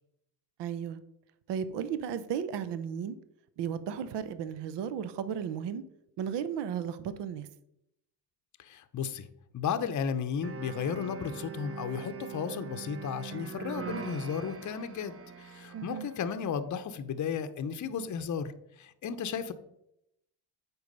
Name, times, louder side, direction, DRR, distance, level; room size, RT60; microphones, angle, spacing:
voice 1, 0.6-1.0 1.5-3.2 3.6-5.8 6.2-7.5 15.7-16.1, right 8 dB, 60° right, 13 dB, 0.8 m, -34 dB
voice 2, 8.6-9.3 9.5-18.5 18.8-19.5, left 7 dB, 40° left, 9 dB, 0.8 m, -34 dB
sound 1, 10.4-16.4, right 7 dB, 30° right, 0.8 m, -42 dB
8.1 x 4.7 x 5.4 m, 0.80 s
cardioid pair, 90°, 46 cm